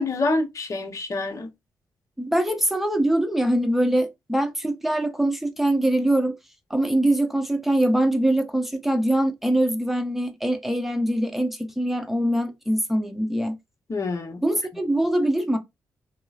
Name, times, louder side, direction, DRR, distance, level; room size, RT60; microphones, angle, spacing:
voice 1, 0.0-1.5 13.9-14.4, left 2 dB, 45° left, 0.8 m, -26 dB
voice 2, 2.2-6.3 6.7-13.6 14.4-15.6, right 1 dB, 5° right, 0.8 m, -23 dB
2.9 x 2.1 x 2.4 m
supercardioid pair, 50°, 8 cm